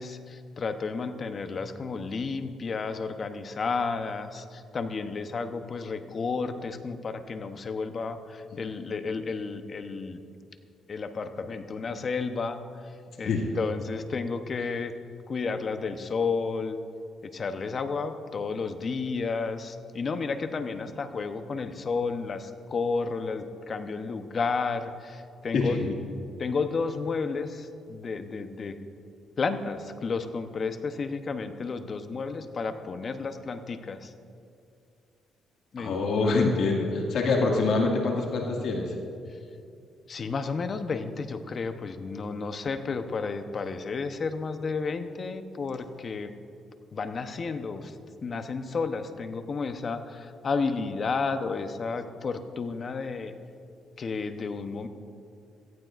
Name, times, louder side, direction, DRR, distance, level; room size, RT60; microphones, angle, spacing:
voice 1, 0.0-10.2 10.9-12.6 13.2-14.9 15.3-16.8 17.2-25.8 26.4-28.8 29.4-34.1 35.7-36.0 36.2-36.4 40.1-46.3 46.9-47.9 48.2-53.3 54.0-54.9, left 4 dB, 45° left, 8 dB, 0.8 m, -32 dB
voice 2, 13.2-13.6 25.5-25.9 35.8-38.9, left 3 dB, 70° left, -1 dB, 2.0 m, -25 dB
17.0 x 14.5 x 2.5 m, 2.5 s
cardioid pair, 90°, 0 cm